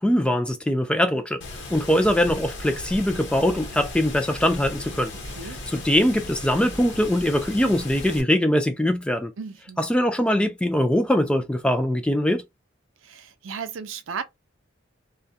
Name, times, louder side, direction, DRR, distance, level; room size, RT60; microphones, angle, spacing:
voice 1, 0.0-1.4 1.7-5.1 5.7-9.3 9.8-12.4, left 1 dB, 5° left, 0.3 m, -22 dB
Water, 1.4-8.2, left 2 dB, 65° left, 0.9 m, -36 dB
voice 2, 5.2-5.6 9.4-9.8 13.0-14.2, right 6 dB, 80° right, 0.5 m, -35 dB
2.2 x 2.1 x 2.7 m
head